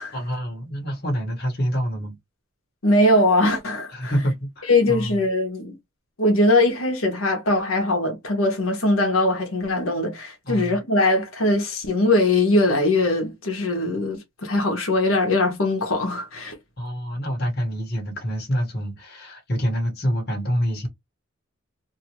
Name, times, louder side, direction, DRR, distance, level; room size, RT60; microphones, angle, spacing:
voice 1, 0.1-2.1 3.9-5.2 10.4-10.7 16.8-20.9, equal, 50° left, 1.2 m, -26 dB
voice 2, 2.8-4.1 4.7-5.8 6.2-16.6, left 2 dB, 80° left, 1.1 m, -21 dB
2.7 x 2.5 x 2.9 m
head